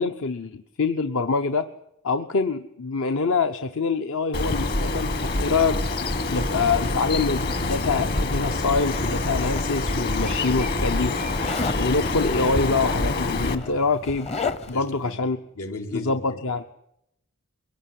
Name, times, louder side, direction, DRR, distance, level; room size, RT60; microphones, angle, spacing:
voice 1, 0.0-1.6 2.0-5.8 6.3-11.2 11.7-14.3 14.7-15.4 15.9-16.6, left 4 dB, 65° left, 0.9 m, -25 dB
Bird, 4.3-13.6, left 2 dB, 45° left, 1.7 m, -26 dB
Zipper (clothing), 8.4-10.1 11.4-11.9 13.0-13.1 13.4-14.9, left 4 dB, 30° left, 0.9 m, -33 dB
voice 2, 14.7-15.2 15.6-16.4, left 2 dB, 85° left, 3.2 m, -35 dB
23.0 x 17.0 x 9.3 m
head